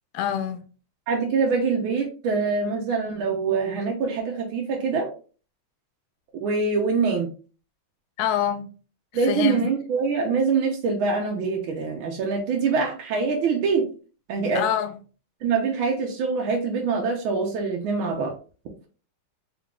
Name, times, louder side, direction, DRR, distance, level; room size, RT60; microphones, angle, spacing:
voice 1, 0.1-0.6 8.2-8.7 9.1-9.7 14.5-15.0, left 10 dB, 85° left, 0.8 m, -26 dB
voice 2, 1.1-5.1 6.3-7.3 9.1-13.9 14.3-14.6 15.4-18.3, right 4 dB, 75° right, 1.5 m, -24 dB
4.4 x 3.8 x 2.3 m
omnidirectional pair, 2.3 m